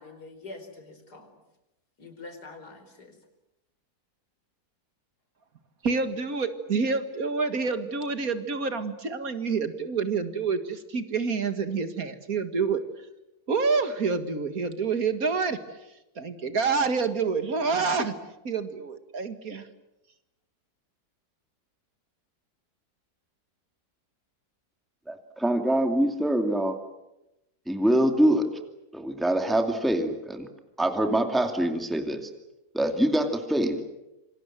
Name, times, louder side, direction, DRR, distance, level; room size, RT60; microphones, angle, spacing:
voice 1, 0.0-1.4 2.0-3.2, left 3 dB, 80° left, 7 dB, 5.2 m, -45 dB
voice 2, 5.8-12.8 13.5-15.6 16.2-18.1 18.4-19.7, right 4 dB, 60° right, 9 dB, 2.4 m, -27 dB
voice 3, 25.1-26.8 27.7-28.5 28.9-30.5 30.8-32.3 32.7-33.8, right 1 dB, ahead, 5 dB, 2.4 m, -24 dB
27.5 x 26.0 x 7.6 m, 0.94 s
omnidirectional pair, 1.7 m